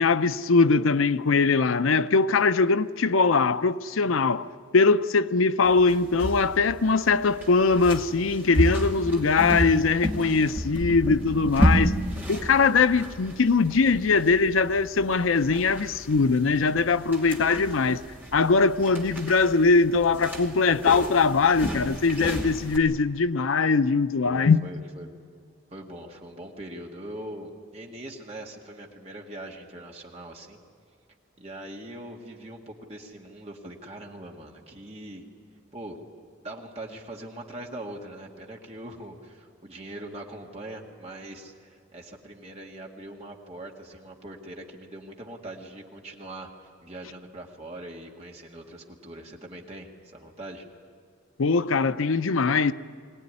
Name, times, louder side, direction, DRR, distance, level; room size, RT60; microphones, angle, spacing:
voice 1, 0.0-4.5 4.7-11.9 12.3-18.0 18.3-24.6 51.4-52.7, left 4 dB, 85° left, 0.6 m, -21 dB
sound 1, 5.6-22.8, equal, 10° right, 2.6 m, -31 dB
voice 2, 24.2-25.1 25.7-30.6 31.4-35.2 35.7-36.0 36.4-46.5 46.8-50.6, right 1 dB, 30° right, 2.2 m, -41 dB
22.0 x 18.0 x 9.8 m
head